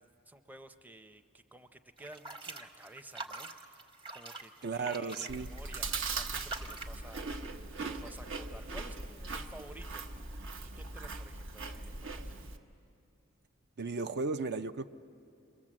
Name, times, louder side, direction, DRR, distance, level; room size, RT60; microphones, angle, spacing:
voice 1, 0.0-3.7 4.1-12.4, right 1 dB, 10° right, 8 dB, 0.6 m, -53 dB
sound 1, 2.0-7.0, right 2 dB, 25° right, 1.2 m, -45 dB
voice 2, 4.6-5.5 13.8-14.9, right 4 dB, 55° right, 9 dB, 0.5 m, -35 dB
Chewing mastication, 5.3-12.6, right 3 dB, 70° right, 1.3 m, -40 dB
28.5 x 22.5 x 7.5 m, 2.5 s
head